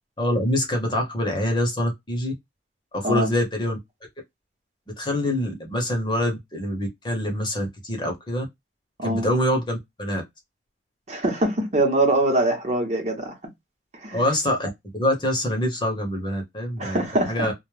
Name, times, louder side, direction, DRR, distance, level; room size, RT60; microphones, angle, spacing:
voice 1, 0.2-2.3 2.9-3.8 5.0-8.5 9.0-10.2 14.1-17.0 17.3-17.5, left 1 dB, 25° left, 0.7 m, -25 dB
voice 2, 11.1-13.3 14.0-14.2 16.8-17.5, right 1 dB, 40° right, 0.8 m, -23 dB
2.2 x 2.0 x 3.1 m
head